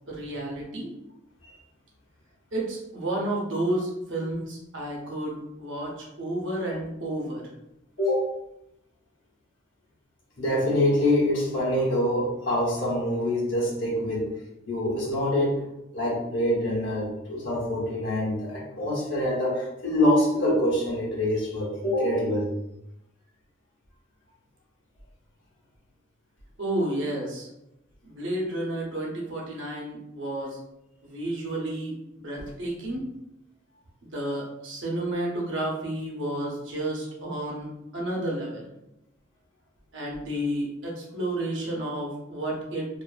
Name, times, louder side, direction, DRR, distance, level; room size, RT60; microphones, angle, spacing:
voice 1, 0.1-0.9 2.5-7.4 26.6-27.5 28.0-30.6 31.0-33.1 34.1-38.7 39.9-42.9, right 1 dB, 65° right, -3 dB, 0.8 m, -31 dB
voice 2, 8.0-8.3 10.4-14.3 14.7-15.6 15.9-22.5, left 1 dB, 65° left, -5 dB, 0.9 m, -25 dB
2.5 x 2.4 x 2.3 m, 0.85 s
head